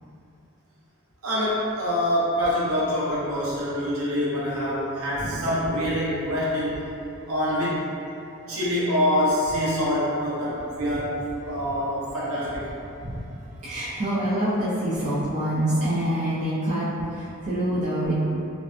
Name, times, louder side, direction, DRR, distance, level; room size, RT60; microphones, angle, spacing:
voice 1, 1.2-6.8 7.3-7.8 8.5-11.2 11.4-12.6 13.0-13.2, equal, 70° right, -8 dB, 0.7 m, -25 dB
voice 2, 13.0-18.1, right 1 dB, 30° right, -10 dB, 0.4 m, -26 dB
2.6 x 2.1 x 2.3 m, 2.7 s
head